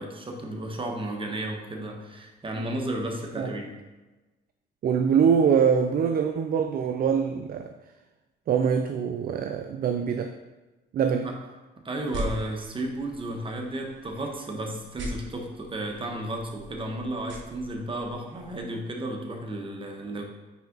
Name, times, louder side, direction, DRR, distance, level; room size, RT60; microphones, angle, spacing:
voice 1, 0.0-3.8 11.2-11.4 11.8-20.2, right 1 dB, 25° right, 1 dB, 1.1 m, -33 dB
voice 2, 4.8-7.7 8.5-10.3 10.9-11.3, right 7 dB, 50° right, 6 dB, 0.4 m, -24 dB
sound 1, 11.9-18.6, equal, 70° right, 1.2 m, -41 dB
5.6 x 4.7 x 3.9 m, 1.2 s
cardioid pair, 90°, 20 cm